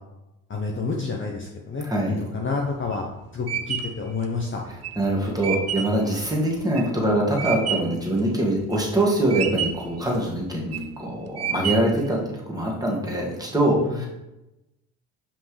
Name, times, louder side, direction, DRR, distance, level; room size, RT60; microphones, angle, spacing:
voice 1, 0.5-3.1 3.3-4.6 13.8-14.1, left 4 dB, 25° left, -1 dB, 0.9 m, -29 dB
voice 2, 1.8-2.2 5.0-12.2 12.5-14.1, right 1 dB, 10° right, -3 dB, 1.9 m, -23 dB
sound 1, 2.6-8.0 8.5-9.0 9.3-10.0 10.5-11.0 11.4-12.1, right 8 dB, 35° right, 0.7 m, -29 dB
5.7 x 5.3 x 3.3 m, 0.95 s
hypercardioid pair, 70°, 45 cm